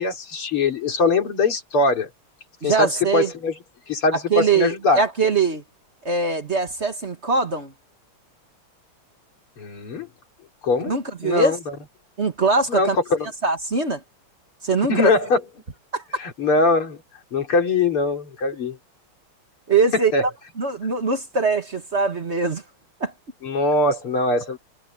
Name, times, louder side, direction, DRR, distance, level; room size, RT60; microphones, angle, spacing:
voice 1, 0.0-2.1 2.6-3.5 3.9-5.0 9.6-10.1 10.6-10.9 11.2-11.6 12.7-13.3 14.9-15.4 16.2-17.0 17.3-18.8 20.1-20.3 23.4-24.6, left 3 dB, 90° left, 4.2 m, -21 dB
voice 2, 2.6-3.3 4.3-5.6 6.0-7.7 10.9-11.6 12.2-13.0 13.4-14.0 14.6-15.1 15.9-16.0 19.7-20.3 20.6-22.6 23.0-23.1, right 4 dB, 35° right, 1.8 m, -22 dB
omnidirectional pair, 2.3 m